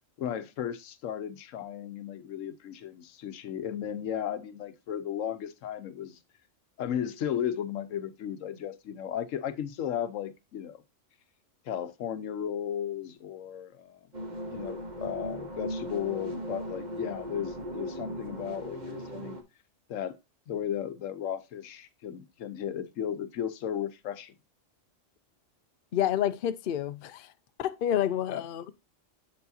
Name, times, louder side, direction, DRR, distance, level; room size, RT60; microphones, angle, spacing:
voice 1, 0.2-6.2 6.8-10.8 11.6-19.4 19.9-20.2 20.5-24.3 28.3-28.4, left 9 dB, 85° left, 1.1 m, -35 dB
sound 1, 14.1-19.4, right 1 dB, 40° right, 1.1 m, -38 dB
voice 2, 25.9-27.3 27.6-28.7, left 11 dB, 55° left, 0.6 m, -29 dB
7.2 x 7.0 x 2.7 m
omnidirectional pair, 1.3 m